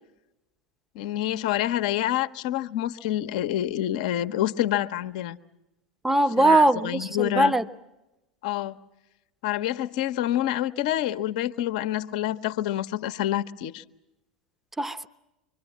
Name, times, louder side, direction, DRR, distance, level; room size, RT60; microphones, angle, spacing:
voice 1, 0.9-5.4 6.4-7.5 8.4-8.8 9.4-13.8, left 13 dB, 60° left, 0.9 m, -27 dB
voice 2, 6.0-7.7 14.8-15.1, right 2 dB, 5° right, 0.9 m, -21 dB
25.0 x 24.0 x 7.3 m
figure-of-eight pair, 80°, 4 cm